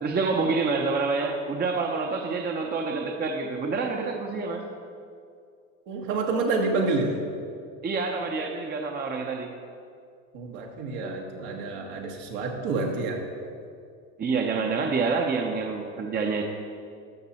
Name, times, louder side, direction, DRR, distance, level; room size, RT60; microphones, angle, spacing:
voice 1, 0.0-4.6 7.8-9.5 14.2-16.4, right 4 dB, 25° right, 2 dB, 0.8 m, -27 dB
voice 2, 5.9-7.2 10.3-13.2, right 3 dB, 75° right, 1 dB, 1.7 m, -28 dB
13.5 x 5.9 x 4.3 m, 2.3 s
supercardioid pair, 105°, 38 cm